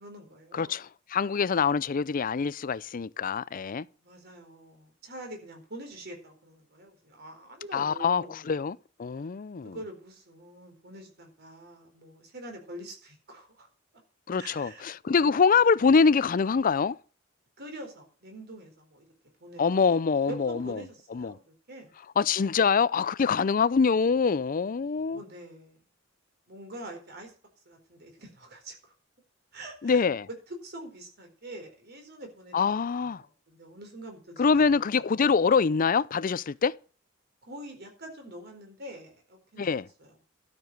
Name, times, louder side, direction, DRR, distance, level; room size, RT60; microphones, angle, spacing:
voice 1, 0.0-0.8 4.0-8.4 9.1-9.3 9.6-13.7 14.4-14.9 17.6-19.1 19.4-19.6 20.3-21.9 25.1-25.8 26.5-27.3 27.7-28.9 29.5-30.0 30.5-34.6 34.9-35.0 37.5-40.1, right 1 dB, 55° right, 4.2 m, -45 dB
voice 2, 0.5-3.9 7.7-9.8 14.3-17.0 19.6-20.8 21.1-21.4 22.2-25.2 29.8-30.3 32.5-33.2 34.4-36.8 39.6-39.9, left 5 dB, 45° left, 0.5 m, -25 dB
12.5 x 6.9 x 6.4 m
head